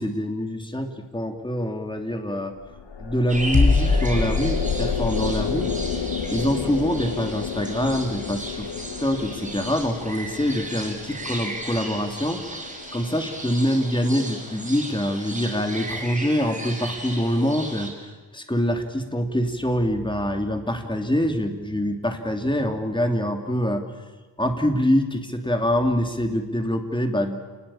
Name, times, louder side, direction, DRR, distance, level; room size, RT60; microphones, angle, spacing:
voice 1, 0.0-2.5 3.0-6.0 6.3-8.7 9.0-12.7 12.9-23.8 24.4-27.4, equal, 10° left, 5 dB, 2.9 m, -25 dB
sound 1, 2.6-14.0, left 6 dB, 75° left, 1.8 m, -32 dB
sound 2, 3.3-17.9, right 1 dB, 15° right, 5.5 m, -36 dB
sound 3, 3.5-9.2 9.5-9.7, left 3 dB, 55° left, 3.7 m, -26 dB
29.0 x 20.5 x 8.8 m, 1.3 s
wide cardioid pair, 115°, 42 cm